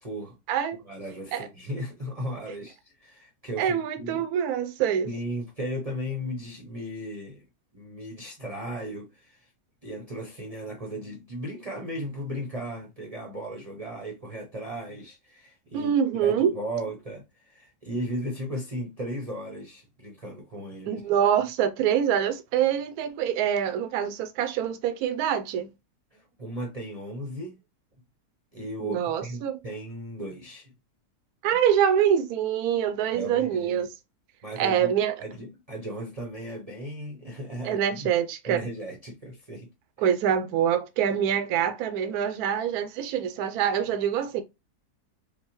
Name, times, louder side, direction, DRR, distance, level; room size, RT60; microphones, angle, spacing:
voice 1, 0.0-0.3 0.8-4.3 5.0-7.4 7.7-9.5 9.8-15.9 16.2-21.0 26.1-27.6 28.5-30.7 33.1-33.8 34.4-34.9 35.2-38.1 38.4-39.7 40.0-40.1, equal, 35° right, 0.7 m, -36 dB
voice 2, 3.6-5.1 15.7-16.5 20.9-25.7 28.8-29.6 31.4-33.9 34.6-35.1 37.6-38.6 40.0-44.4, right 9 dB, 75° right, 1.1 m, -25 dB
5.3 x 2.2 x 3.0 m
omnidirectional pair, 1.6 m